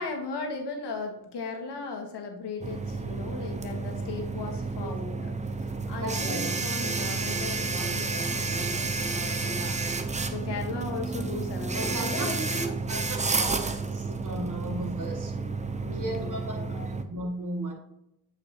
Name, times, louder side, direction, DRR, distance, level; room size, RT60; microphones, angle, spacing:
voice 1, 0.0-9.8 10.3-12.7 15.8-16.9, left 3 dB, 90° left, 3 dB, 1.4 m, -37 dB
sound 1, 2.6-17.0, right 3 dB, 20° right, 0.6 m, -31 dB
voice 2, 6.0-6.5 11.7-12.3 12.7-13.3 13.6-15.3 15.9-17.7, right 1 dB, 50° right, 0 dB, 2.0 m, -36 dB
8.1 x 4.8 x 2.9 m, 0.81 s
cardioid pair, 75°, 39 cm